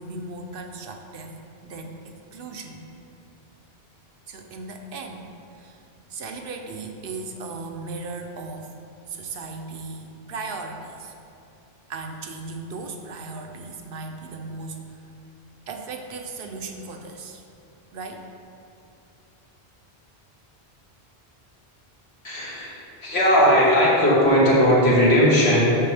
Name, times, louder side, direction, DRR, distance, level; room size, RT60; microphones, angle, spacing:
voice 1, 0.0-1.4 1.6-2.9 4.3-5.3 5.5-5.8 6.1-8.7 9.1-11.1 11.9-15.0 15.7-17.4 17.9-18.3, right 3 dB, 65° right, 4 dB, 0.8 m, -36 dB
voice 2, 22.2-22.7 23.0-25.8, equal, 90° left, -7 dB, 1.9 m, -17 dB
6.8 x 5.7 x 3.4 m, 2.6 s
omnidirectional pair, 1.0 m